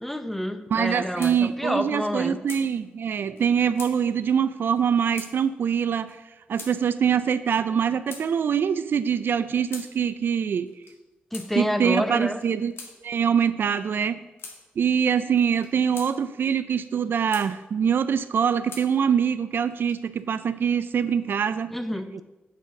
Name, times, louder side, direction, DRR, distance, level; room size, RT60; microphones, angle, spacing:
voice 1, 0.0-2.4 11.3-12.4 21.7-22.2, equal, 5° left, 10 dB, 0.6 m, -28 dB
voice 2, 0.7-6.2 6.5-10.7 11.6-12.7 13.0-14.2 14.8-21.7, right 7 dB, 60° right, 14 dB, 0.3 m, -24 dB
sound 1, 0.8-1.4 1.7-1.8 2.0-2.6 3.4-3.5 3.7-3.9 4.7-4.9 5.1-5.3 6.1-6.2 6.6-6.7 7.5-8.3 9.0-9.9 10.7-11.0 11.3-11.5 12.2-12.9 13.8-13.9 14.4-14.6 15.4-16.1 16.8-17.5 18.1-18.9 19.6-20.2, left 4 dB, 70° left, 1.4 m, -42 dB
8.4 x 3.9 x 5.9 m, 1.1 s
cardioid pair, 70°, 4 cm